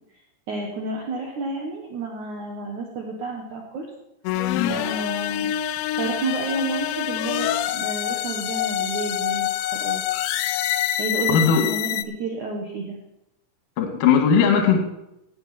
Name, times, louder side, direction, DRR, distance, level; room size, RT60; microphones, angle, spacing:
voice 1, 0.5-3.9 4.7-5.5 5.9-10.0 11.0-13.0, right 3 dB, 75° right, 0 dB, 1.7 m, -30 dB
sound 1, 4.3-12.0, left 12 dB, 85° left, 2.5 m, -26 dB
voice 2, 11.3-11.7 13.8-14.8, left 6 dB, 60° left, 3 dB, 2.6 m, -18 dB
16.0 x 9.0 x 4.2 m, 0.88 s
omnidirectional pair, 5.5 m